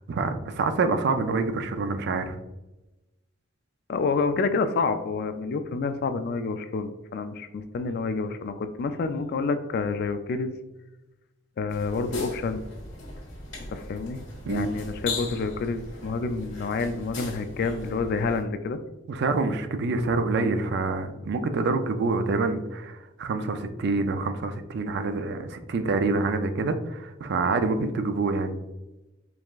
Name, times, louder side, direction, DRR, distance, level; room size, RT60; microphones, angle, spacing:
voice 1, 0.1-2.4 14.4-14.7 19.1-28.5, right 3 dB, 60° right, 8 dB, 0.4 m, -26 dB
voice 2, 3.9-10.5 11.6-12.6 13.7-14.2 14.5-18.8, left 4 dB, 55° left, 9 dB, 0.3 m, -28 dB
sound 1, 11.7-18.4, left 3 dB, 70° left, 1.3 m, -39 dB
4.7 x 3.4 x 2.4 m, 1.0 s
head